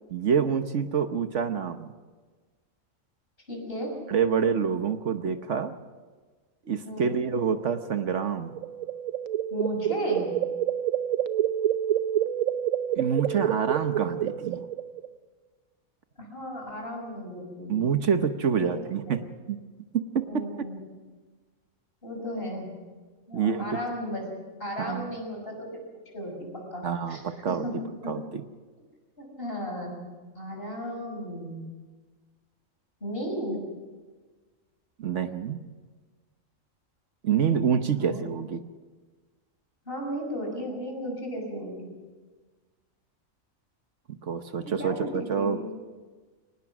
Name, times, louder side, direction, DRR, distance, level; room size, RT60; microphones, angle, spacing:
voice 1, 0.1-1.9 4.1-5.7 6.7-8.5 13.0-14.6 17.7-19.2 19.5-19.6 19.9-20.4 23.3-23.7 24.8-25.1 26.8-27.7 28.1-28.4 35.0-35.6 37.2-38.6 44.2-45.7, right 7 dB, 65° right, 9 dB, 1.3 m, -27 dB
voice 2, 3.5-3.9 6.8-7.2 9.5-10.3 16.2-17.7 18.6-18.8 20.2-20.8 22.0-22.7 23.3-24.2 24.6-25.8 26.1-27.2 27.5-28.1 29.2-30.1 30.4-31.6 33.0-33.6 37.9-38.2 39.9-41.9 44.6-45.7, equal, 45° left, 1 dB, 6.1 m, -35 dB
sound 1, 8.4-15.1, right 10 dB, 85° right, 1.2 m, -28 dB
23.5 x 19.5 x 6.1 m, 1.4 s
omnidirectional pair, 1.4 m